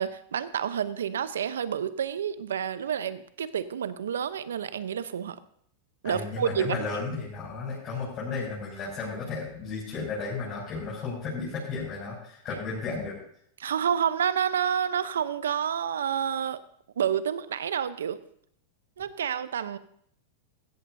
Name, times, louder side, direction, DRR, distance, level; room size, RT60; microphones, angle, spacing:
voice 1, 0.0-5.4 6.0-6.8 13.6-16.6 17.0-18.2 19.0-19.8, right 8 dB, 85° right, 14 dB, 0.8 m, -29 dB
voice 2, 6.0-13.2, left 4 dB, 35° left, -6 dB, 6.8 m, -34 dB
16.0 x 14.5 x 2.8 m, 0.67 s
hypercardioid pair, 110°, 0 cm